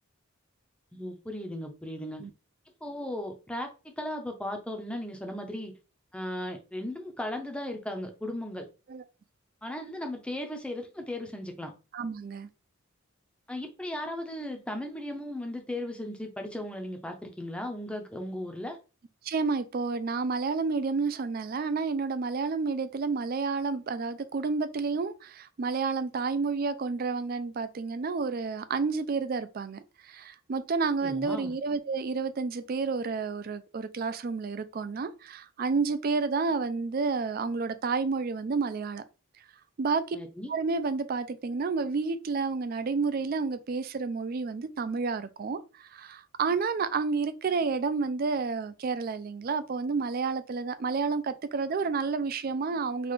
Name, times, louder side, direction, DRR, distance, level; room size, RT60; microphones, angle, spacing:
voice 1, 0.9-2.2 2.8-5.7 6.1-8.7 9.6-11.7 13.5-18.8 31.0-31.5 40.1-40.5, left 1 dB, 5° left, 0.5 m, -36 dB
voice 2, 11.9-12.5 19.2-39.0 39.8-40.2 40.5-53.1, right 4 dB, 40° right, 0.3 m, -30 dB
3.9 x 2.4 x 3.1 m
head